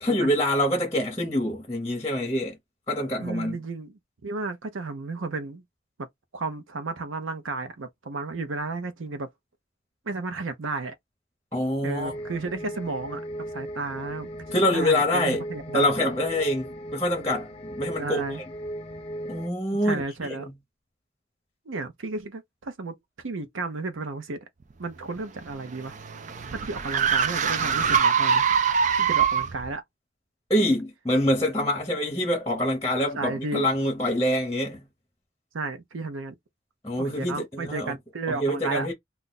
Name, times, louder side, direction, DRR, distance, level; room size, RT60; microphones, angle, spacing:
voice 1, 0.0-2.6 2.9-3.6 11.5-12.2 14.5-15.4 15.7-18.2 19.3-20.5 30.5-34.8 36.8-38.0 38.3-38.9, left 1 dB, 15° left, 0.8 m, -25 dB
voice 2, 3.2-3.9 4.2-5.6 6.3-9.3 10.1-10.9 11.8-13.2 13.5-15.9 17.2-17.3 18.0-18.4 19.8-20.5 21.7-22.9 23.2-24.5 24.8-25.9 26.5-28.5 29.0-29.8 33.1-33.7 35.5-36.4 37.0-38.9, right 3 dB, 90° right, 0.7 m, -33 dB
sound 1, 12.0-19.5, equal, 30° left, 0.4 m, -37 dB
sound 2, 25.2-29.7, right 7 dB, 40° right, 0.4 m, -23 dB
2.4 x 2.2 x 3.9 m
head